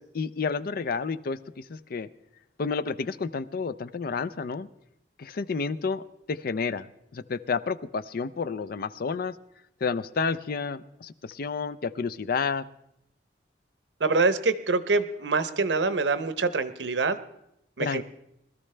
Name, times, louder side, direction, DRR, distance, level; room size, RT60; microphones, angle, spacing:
voice 1, 0.0-2.1 2.6-4.7 5.2-6.9 7.1-9.3 9.8-12.6 17.8-18.0, left 5 dB, 55° left, 14 dB, 0.5 m, -30 dB
voice 2, 14.0-17.2 17.8-18.0, right 3 dB, 70° right, 12 dB, 0.8 m, -25 dB
20.5 x 13.0 x 3.3 m, 0.79 s
head